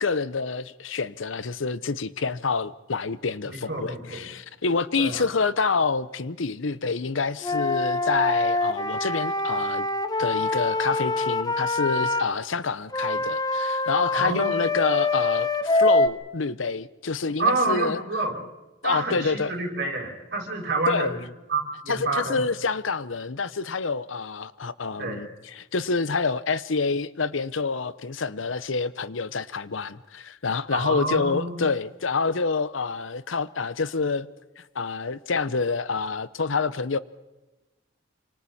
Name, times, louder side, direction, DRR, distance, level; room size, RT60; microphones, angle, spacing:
voice 1, 0.0-9.9 10.2-18.0 18.8-19.5 20.9-21.2 21.9-34.3 34.6-37.0, left 4 dB, 80° left, 0.9 m, -27 dB
voice 2, 3.5-4.3 5.0-5.2 14.1-14.6 17.4-18.4 18.8-21.2 21.5-22.4 25.0-25.2 30.7-31.6, right 3 dB, 55° right, 6.4 m, -28 dB
Wind instrument woodwind instrument, 7.4-12.3 12.9-16.1, left 2 dB, 20° left, 1.1 m, -25 dB
28.5 x 25.5 x 4.3 m
head